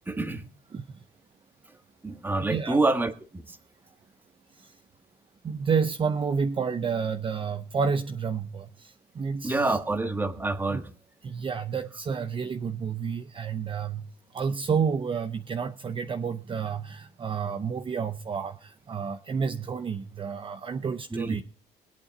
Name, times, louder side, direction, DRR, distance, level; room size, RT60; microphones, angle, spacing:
voice 1, 0.1-0.5 2.0-3.6 9.4-10.9 21.1-21.4, right 2 dB, 10° right, 8 dB, 1.5 m, -27 dB
voice 2, 2.5-2.8 4.5-4.8 5.4-9.8 10.7-10.8 11.2-14.1 14.3-21.4, right 6 dB, 30° right, 8 dB, 0.7 m, -30 dB
21.0 x 8.6 x 4.1 m, 0.40 s
cardioid pair, 110°, 17 cm